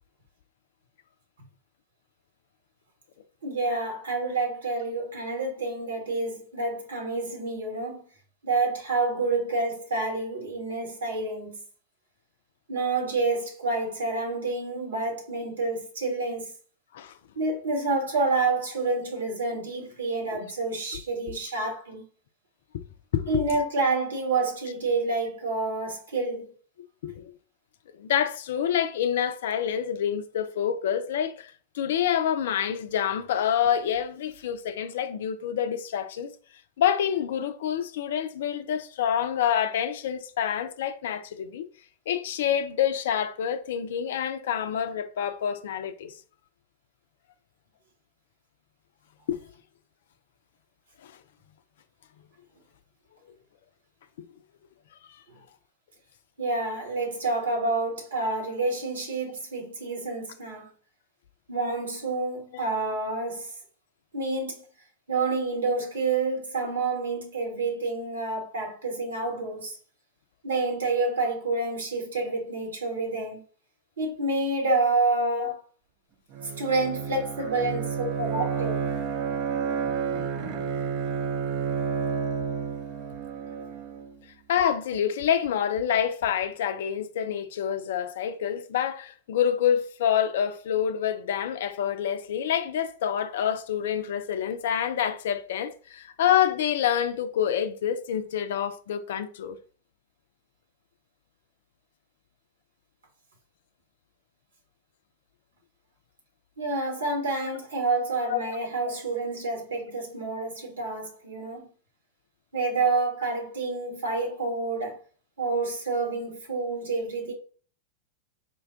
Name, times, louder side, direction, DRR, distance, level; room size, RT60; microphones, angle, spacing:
voice 1, 3.4-8.1 8.4-11.6 12.7-16.5 17.4-22.0 23.3-26.5 56.4-60.7 61.5-63.6 64.1-64.6 65.1-69.8 70.4-73.4 74.0-75.6 76.6-78.8 106.6-111.7 112.5-115.0 115.4-117.3, right 3 dB, 65° right, 1.2 m, -28 dB
voice 2, 27.0-27.3 27.9-36.3 36.8-41.7 42.1-46.2 49.3-49.4 51.0-51.2 54.2-54.3 62.5-62.6 74.7-74.8 75.4-75.5 78.0-78.1 84.5-99.6 108.3-108.6 108.8-108.9, left 9 dB, 60° left, 0.4 m, -27 dB
Bowed string instrument, 76.3-84.1, right 6 dB, 40° right, 0.6 m, -30 dB
4.4 x 2.2 x 3.5 m
figure-of-eight pair, 90°, 0 cm